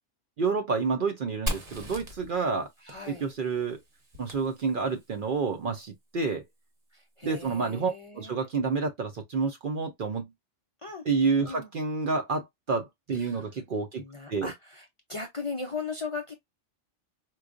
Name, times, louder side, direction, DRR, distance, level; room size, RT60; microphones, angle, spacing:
voice 1, 0.4-2.7 3.1-3.8 4.2-6.4 7.2-10.3 11.1-14.0 14.3-14.5, right 4 dB, 55° right, 0.6 m, -29 dB
Fire, 1.5-5.1, equal, 35° right, 0.9 m, -39 dB
voice 2, 2.8-3.3 6.9-8.4 10.8-11.1 11.4-11.7 13.1-13.5 14.0-16.3, left 4 dB, 40° left, 0.5 m, -38 dB
4.6 x 2.2 x 2.4 m
omnidirectional pair, 1.3 m